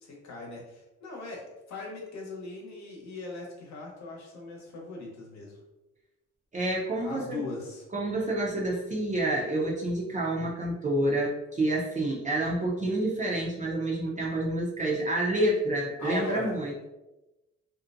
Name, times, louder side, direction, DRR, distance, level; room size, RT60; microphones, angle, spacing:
voice 1, 0.0-1.4 1.7-5.6 7.0-7.8 16.0-16.6, left 3 dB, 65° left, -2 dB, 0.9 m, -39 dB
voice 2, 6.5-7.4 7.9-16.8, right 1 dB, 25° right, -4 dB, 0.5 m, -28 dB
2.5 x 2.1 x 2.5 m, 1.0 s
cardioid pair, 90°, 30 cm